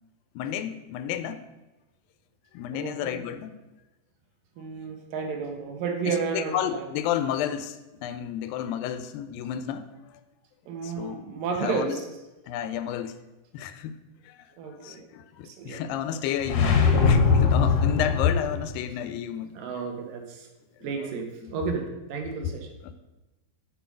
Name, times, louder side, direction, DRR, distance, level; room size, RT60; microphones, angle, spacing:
voice 1, 0.4-1.4 2.5-3.6 6.1-7.8 8.0-9.9 10.8-11.2 11.6-11.9 12.5-13.1 13.5-13.9 14.3-14.4 14.8-19.6 21.4-21.5, left 9 dB, 85° left, 11 dB, 2.3 m, -31 dB
voice 2, 2.7-3.2 4.6-6.9 10.7-12.0 14.6-15.0 15.4-15.8 19.5-20.5 20.8-22.7, right 5 dB, 75° right, 3 dB, 2.7 m, -32 dB
sound 1, 16.4-18.6, left 5 dB, 65° left, 1.8 m, -21 dB
7.1 x 7.0 x 5.1 m, 1.0 s
omnidirectional pair, 4.1 m